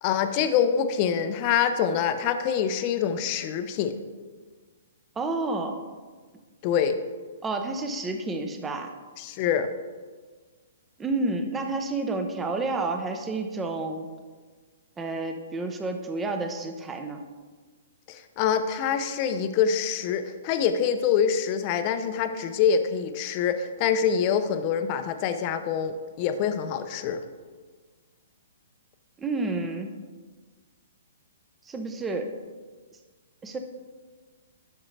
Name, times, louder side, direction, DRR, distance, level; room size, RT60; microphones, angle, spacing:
voice 1, 0.0-3.9 6.6-7.0 9.2-9.7 18.1-27.2, left 7 dB, 35° left, 9 dB, 0.6 m, -25 dB
voice 2, 5.2-5.7 7.4-8.9 11.0-14.1 15.0-17.2 29.2-29.9 31.7-32.3 33.4-33.6, right 3 dB, 10° right, 5 dB, 0.7 m, -30 dB
11.5 x 6.2 x 3.3 m, 1.5 s
hypercardioid pair, 155°, 0 cm